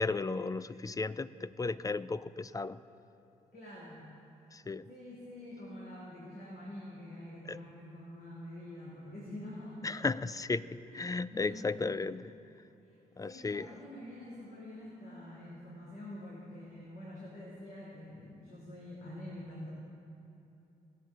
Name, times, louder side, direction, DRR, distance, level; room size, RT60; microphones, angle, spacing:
voice 1, 0.0-2.8 4.5-4.9 7.5-7.6 9.8-12.3 13.2-13.7, left 3 dB, 20° left, 16 dB, 0.5 m, -34 dB
voice 2, 3.5-4.1 4.9-9.8 10.9-11.8 12.8-12.9 13.2-19.7, left 1 dB, 55° left, -6 dB, 3.0 m, -46 dB
19.0 x 7.3 x 3.9 m, 2.8 s
hypercardioid pair, 45°, 18 cm